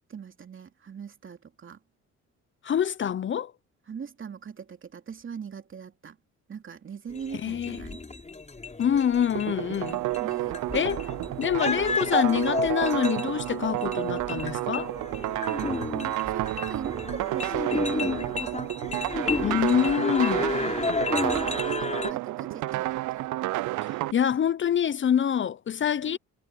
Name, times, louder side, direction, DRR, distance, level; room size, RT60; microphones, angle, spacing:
voice 1, 0.1-1.8 3.9-6.2 6.5-8.0 10.2-10.6 16.3-19.0 19.4-19.7 20.4-20.9 21.6-23.3 26.1-26.2, right 6 dB, 40° right, 2.7 m, -41 dB
voice 2, 2.6-3.5 7.4-7.8 8.8-10.0 10.7-11.1 11.4-14.9 19.4-20.5 23.8-26.2, left 8 dB, 40° left, 0.7 m, -26 dB
sound 1, 7.1-22.1, left 3 dB, 25° left, 4.8 m, -32 dB
sound 2, 9.3-24.1, right 18 dB, 75° right, 0.5 m, -30 dB
cardioid pair, 90°, 30 cm